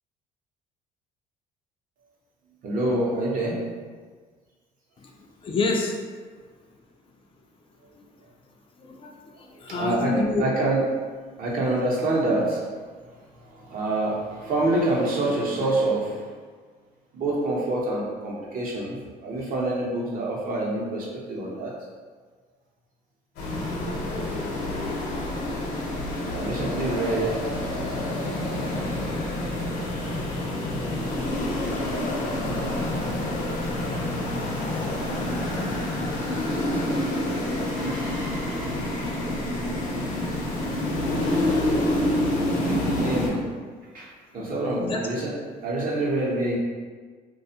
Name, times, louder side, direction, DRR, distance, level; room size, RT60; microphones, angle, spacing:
voice 1, 2.6-3.7 9.7-10.8 11.4-12.6 13.4-16.3 17.1-21.7 26.3-27.6 28.7-29.2 30.8-31.3 36.6-39.4 42.7-43.5 43.9-45.4 45.6-46.6, right 2 dB, 55° right, -4 dB, 0.8 m, -27 dB
voice 2, 5.4-6.0 7.9-8.0 8.8-10.4 44.4-44.5 44.8-45.0, left 3 dB, 30° left, 0 dB, 0.3 m, -28 dB
sound 1, 23.4-43.3, left 1 dB, 85° left, 0.8 m, -27 dB
2.4 x 2.3 x 2.8 m, 1.5 s
cardioid pair, 110°, 17 cm